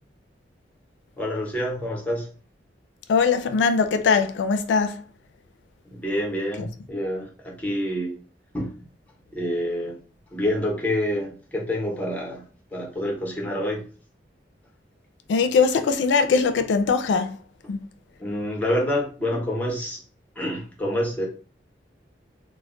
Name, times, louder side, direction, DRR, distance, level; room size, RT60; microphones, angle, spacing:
voice 1, 1.2-2.3 5.9-8.1 8.5-8.8 9.3-10.0 10.3-13.8 18.2-20.0 20.4-21.3, equal, 10° left, 0.8 m, -27 dB
voice 2, 3.1-5.0 6.6-6.7 15.3-17.4 17.7-17.8, left 5 dB, 85° left, 0.3 m, -21 dB
2.2 x 2.0 x 3.6 m
head